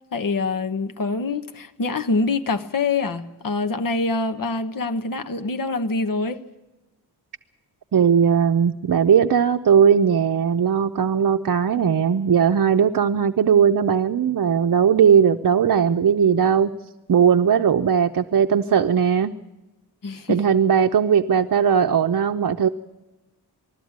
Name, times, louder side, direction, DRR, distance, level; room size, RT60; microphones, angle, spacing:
voice 1, 0.1-6.4 20.0-20.4, left 3 dB, 55° left, 1.1 m, -25 dB
voice 2, 7.9-16.7 17.1-19.3 20.3-22.7, right 7 dB, 60° right, 0.7 m, -18 dB
20.5 x 14.0 x 9.5 m
wide cardioid pair, 105°, 39 cm